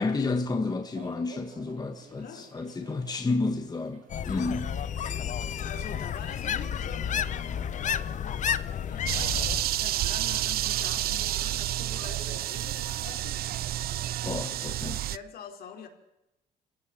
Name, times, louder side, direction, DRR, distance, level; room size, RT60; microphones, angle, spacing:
voice 1, 0.0-4.7 14.2-15.0, left 3 dB, 25° left, 1.7 m, -31 dB
sound 1, 0.6-14.6, right 5 dB, 45° right, 3.8 m, -52 dB
voice 2, 2.1-2.5 4.3-4.7 5.0-14.7 15.1-15.9, left 7 dB, 65° left, 4.6 m, -46 dB
sound 2, 4.1-9.6, left 8 dB, 45° left, 1.0 m, -31 dB
sound 3, 9.1-15.2, right 13 dB, 65° right, 0.7 m, -30 dB
26.0 x 16.0 x 7.2 m
cardioid pair, 110°, 17 cm